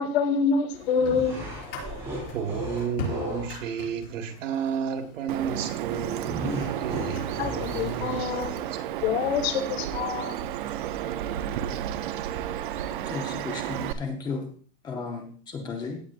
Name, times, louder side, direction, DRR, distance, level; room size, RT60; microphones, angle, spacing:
voice 1, 0.0-1.4 7.4-10.5, left 6 dB, 55° left, 1.6 m, -27 dB
sound 1, 0.7-7.3, left 3 dB, 80° left, 5.6 m, -42 dB
sound 2, 1.0-3.6 6.2-8.5, right 1 dB, 10° right, 4.3 m, -35 dB
voice 2, 2.3-8.8, right 7 dB, 85° right, 1.9 m, -33 dB
Bird vocalization bird call bird song, 5.3-13.9, right 11 dB, 45° right, 0.6 m, -32 dB
voice 3, 12.9-14.5 14.8-16.0, left 4 dB, 10° left, 0.7 m, -34 dB
16.5 x 7.8 x 2.5 m
supercardioid pair, 175°, 37 cm